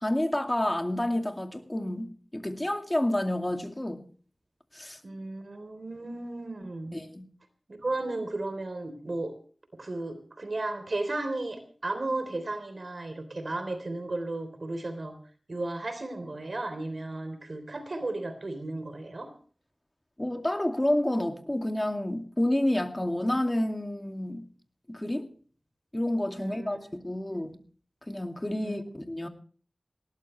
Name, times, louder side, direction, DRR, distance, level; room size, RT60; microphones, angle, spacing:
voice 1, 0.0-4.1 4.7-5.0 6.9-7.3 20.2-24.4 24.9-25.3 25.9-27.6 28.1-29.3, left 1 dB, 20° left, 5 dB, 2.4 m, -29 dB
voice 2, 5.0-6.9 7.8-9.3 9.8-15.2 15.5-19.3 26.4-26.9 27.3-27.4 28.6-28.9, right 2 dB, 60° right, 9 dB, 3.6 m, -34 dB
20.5 x 18.0 x 3.3 m, 0.43 s
wide cardioid pair, 75°, 0 cm